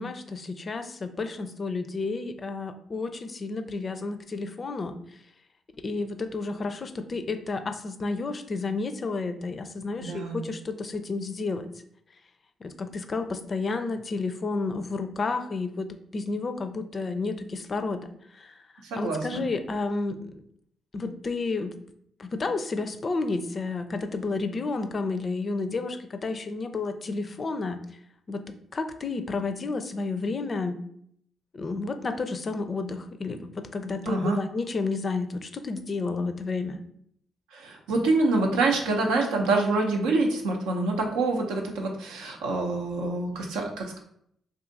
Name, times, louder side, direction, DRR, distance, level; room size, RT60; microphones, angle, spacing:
voice 1, 0.0-5.0 5.8-11.7 12.6-18.1 18.3-18.6 19.0-20.4 20.9-21.7 22.2-27.8 28.3-30.8 31.5-36.8, left 3 dB, 45° left, 9 dB, 0.4 m, -31 dB
voice 2, 10.0-10.4 18.9-19.4 34.1-34.4 37.5-44.0, right 3 dB, 85° right, 1 dB, 0.5 m, -26 dB
2.6 x 2.4 x 3.8 m, 0.69 s
hypercardioid pair, 50°, 0 cm